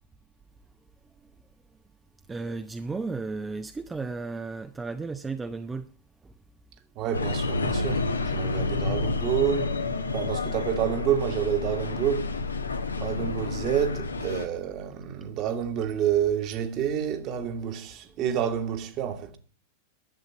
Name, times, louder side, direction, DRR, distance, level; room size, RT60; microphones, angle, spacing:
voice 1, 2.3-5.9, right 3 dB, 15° right, 0.7 m, -34 dB
voice 2, 6.9-9.8 10.1-12.3 13.0-19.4, right 9 dB, 40° right, 1.7 m, -28 dB
sound 1, 7.1-14.5, left 3 dB, 75° left, 1.3 m, -29 dB
11.0 x 8.0 x 8.4 m
figure-of-eight pair, 90°, 0 cm